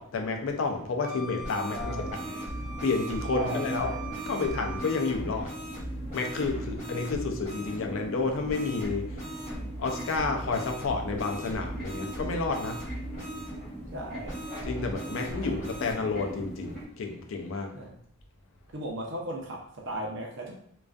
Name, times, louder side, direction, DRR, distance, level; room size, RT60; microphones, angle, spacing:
voice 1, 0.0-2.3 2.8-3.9 4.3-5.5 6.1-9.1 9.8-12.8 14.6-17.7, left 4 dB, 70° left, 3 dB, 0.4 m, -30 dB
Wind instrument woodwind instrument, 1.0-5.1, right 3 dB, 25° right, 0.7 m, -42 dB
sound 1, 1.4-7.8 8.5-13.5 14.2-15.9, right 1 dB, 30° left, 1.2 m, -39 dB
voice 2, 1.7-2.1 3.3-4.1 13.9-14.4 15.4-15.6 17.7-17.9 18.7-20.5, right 1 dB, 60° right, -1 dB, 0.6 m, -36 dB
sound 2, 2.0-16.9, right 1 dB, ahead, 1.1 m, -40 dB
2.4 x 2.3 x 2.3 m, 0.64 s
head